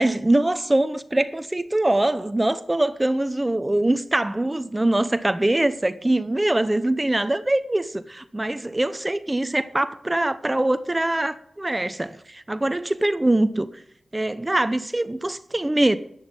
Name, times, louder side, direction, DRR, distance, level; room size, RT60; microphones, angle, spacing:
voice 1, 0.0-13.7 14.1-16.0, right 1 dB, 20° right, 0.8 m, -23 dB
11.0 x 10.5 x 7.3 m
cardioid pair, 55°, 0 cm